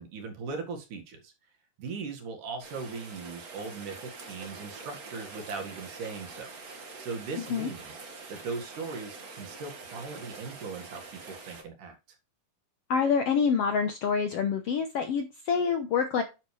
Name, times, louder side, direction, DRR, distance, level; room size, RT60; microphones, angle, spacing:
voice 1, 0.0-1.3 1.8-4.0 4.3-6.5 7.0-8.0 8.3-11.0 11.3-12.0, right 4 dB, 65° right, 4 dB, 3.2 m, -39 dB
Rain, 2.6-11.6, right 4 dB, 40° right, 1.3 m, -45 dB
voice 2, 7.4-7.7 12.9-16.2, left 6 dB, 85° left, 6 dB, 1.3 m, -27 dB
10.5 x 6.7 x 3.2 m, 0.28 s
omnidirectional pair, 4.1 m